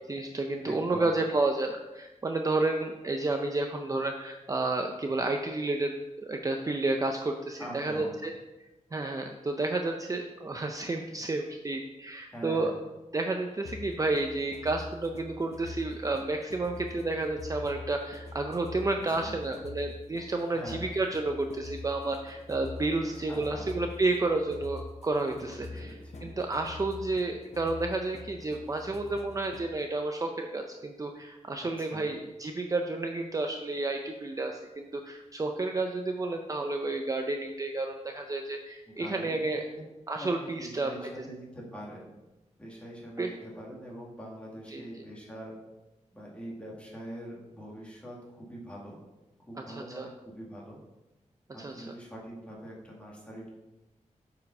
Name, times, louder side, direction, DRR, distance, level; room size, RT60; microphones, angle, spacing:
voice 1, 0.1-8.3 8.9-12.7 13.1-25.9 26.2-39.6 40.1-41.1 43.2-43.3 44.7-45.0 49.7-50.1 51.6-51.9, right 2 dB, 25° right, 4 dB, 0.5 m, -31 dB
voice 2, 0.6-1.1 7.6-8.1 12.3-12.8 19.1-19.4 20.5-20.9 23.3-23.8 25.4-26.4 31.8-32.1 38.9-39.8 40.2-42.2 42.6-45.5 46.1-49.0 49.4-50.8 51.5-53.5, equal, 10° left, -4 dB, 2.1 m, -44 dB
sound 1, 13.6-29.8, left 3 dB, 60° left, 0.7 m, -45 dB
8.1 x 4.8 x 5.3 m, 1.0 s
wide cardioid pair, 145°, 13 cm